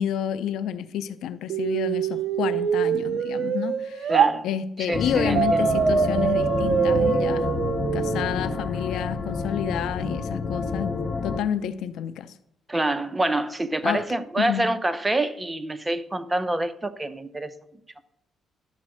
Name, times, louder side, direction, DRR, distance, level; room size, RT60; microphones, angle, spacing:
voice 1, 0.0-4.1 4.4-7.5 7.9-10.9 11.2-12.3 13.8-14.0 14.4-14.6, left 9 dB, 80° left, 0.5 m, -29 dB
sound 1, 1.5-4.3 5.3-8.4, right 7 dB, 65° right, 0.6 m, -24 dB
voice 2, 4.1-4.5 4.9-5.7 12.7-17.5, right 1 dB, 15° right, 0.6 m, -26 dB
sound 2, 4.9-11.4, left 4 dB, 40° left, 1.0 m, -28 dB
11.5 x 4.3 x 6.2 m
cardioid pair, 90°, 0 cm